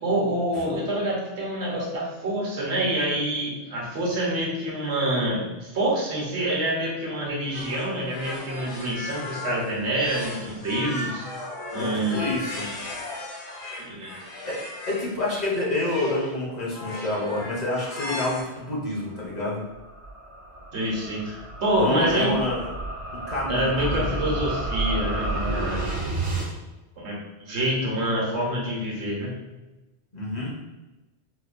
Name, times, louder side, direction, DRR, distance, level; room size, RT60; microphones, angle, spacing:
voice 1, 0.0-11.2 11.7-12.3 13.9-14.1 20.7-22.4 23.5-25.9 27.0-29.3, right 1 dB, 75° right, -3 dB, 1.2 m, -27 dB
sound 1, 7.5-15.1 15.7-16.4 16.7-18.4, left 2 dB, 75° left, 1.0 m, -35 dB
voice 2, 12.1-12.7 14.4-14.6 14.9-19.6 21.7-22.7 23.3-24.4 25.6-25.9 30.1-30.5, left 2 dB, 45° left, -4 dB, 0.7 m, -28 dB
sound 2, 18.7-26.5, right 2 dB, 40° right, 0.5 m, -31 dB
4.3 x 2.2 x 2.4 m, 1.1 s
omnidirectional pair, 1.2 m